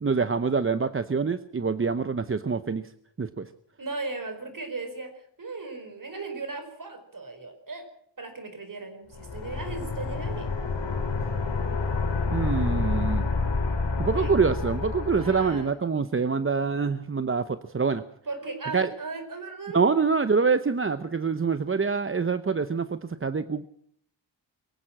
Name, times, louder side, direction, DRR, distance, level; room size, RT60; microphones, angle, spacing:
voice 1, 0.0-2.9 3.2-3.5 12.3-13.3 14.0-18.0 18.7-18.9 19.7-23.6, right 5 dB, 30° right, 12 dB, 0.8 m, -25 dB
voice 2, 3.8-7.9 8.2-10.5 14.1-14.3 15.1-15.7 18.3-19.8, right 3 dB, 45° right, 7 dB, 4.8 m, -37 dB
sound 1, 9.1-15.6, left 3 dB, 70° left, 3.4 m, -28 dB
23.5 x 15.5 x 7.6 m, 0.65 s
wide cardioid pair, 120°, 44 cm